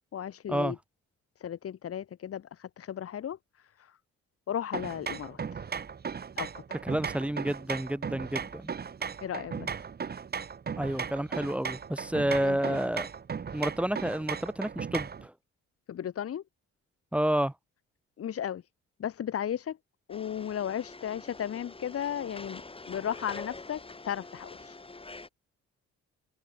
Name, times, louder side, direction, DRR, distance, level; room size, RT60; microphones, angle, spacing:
voice 1, 0.1-0.8 1.4-4.0 4.5-5.6 6.4-6.5 9.2-9.7 12.4-12.8 15.9-16.4 18.2-18.6 19.0-19.8 20.1-22.6 22.9-24.8, left 9 dB, 50° left, 1.2 m, -35 dB
sound 1, 4.7-15.3, right 6 dB, 30° right, 1.0 m, -37 dB
voice 2, 6.8-8.7 10.8-13.1 13.5-15.3 17.1-17.5, right 1 dB, 5° right, 0.4 m, -30 dB
sound 2, 20.1-25.3, left 3 dB, 20° left, 2.7 m, -45 dB
cardioid pair, 90°, 30 cm